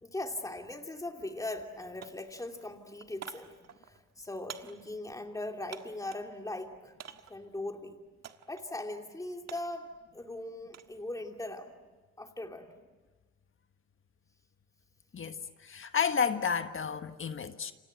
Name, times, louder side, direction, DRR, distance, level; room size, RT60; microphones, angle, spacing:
voice 1, 0.0-6.9 7.3-8.0 8.5-11.7 12.2-12.7, left 2 dB, 10° left, 2.7 m, -40 dB
sound 1, 0.8-0.9 1.2-1.7 2.0-6.3 7.0-7.5 8.2-8.7 9.0-11.0 11.3-11.8, right 8 dB, 60° right, 1.6 m, -49 dB
voice 2, 15.1-17.7, left 6 dB, 45° left, 1.6 m, -31 dB
29.0 x 26.0 x 7.8 m
cardioid pair, 90°, 30 cm